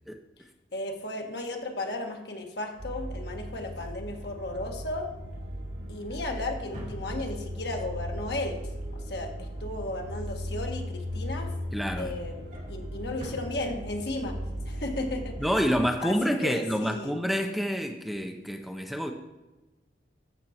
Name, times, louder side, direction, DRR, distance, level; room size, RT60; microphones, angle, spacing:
voice 1, 0.7-5.1 5.9-8.6 8.9-11.5 12.0-14.4 14.7-15.4 16.0-17.1, left 2 dB, 65° left, 3 dB, 1.5 m, -35 dB
Drawer open or close, 2.6-7.7 8.1-8.4 8.6-10.9 11.3-14.3 14.6-14.8 15.1-15.2, equal, 45° right, 3.1 m, -50 dB
sound 1, 2.8-15.8, equal, 85° right, 1.9 m, -37 dB
voice 2, 11.7-12.1 15.4-19.1, equal, ahead, 4 dB, 0.6 m, -28 dB
12.0 x 7.6 x 4.3 m, 1.1 s
head